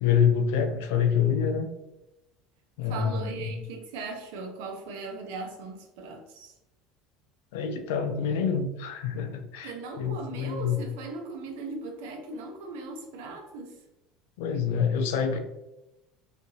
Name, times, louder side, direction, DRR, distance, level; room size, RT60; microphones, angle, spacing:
voice 1, 0.0-1.7 2.8-3.5 7.5-10.8 14.4-15.4, left 7 dB, 85° left, 6 dB, 0.4 m, -26 dB
voice 2, 2.8-6.5 9.6-13.8, right 3 dB, 85° right, 3 dB, 0.6 m, -38 dB
2.8 x 2.5 x 2.6 m, 0.95 s
supercardioid pair, 120°, 0 cm